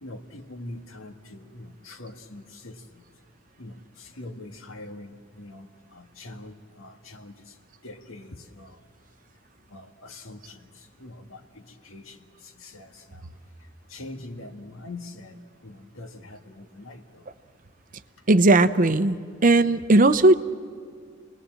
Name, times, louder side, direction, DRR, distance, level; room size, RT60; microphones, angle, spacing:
voice 1, 0.0-3.0 3.6-7.6 7.8-8.8 9.7-13.3 13.9-17.2, left 2 dB, 70° left, 6 dB, 1.8 m, -43 dB
voice 2, 18.3-19.2 19.4-20.3, right 2 dB, 40° right, 12 dB, 0.7 m, -17 dB
29.0 x 20.0 x 7.6 m, 2.1 s
head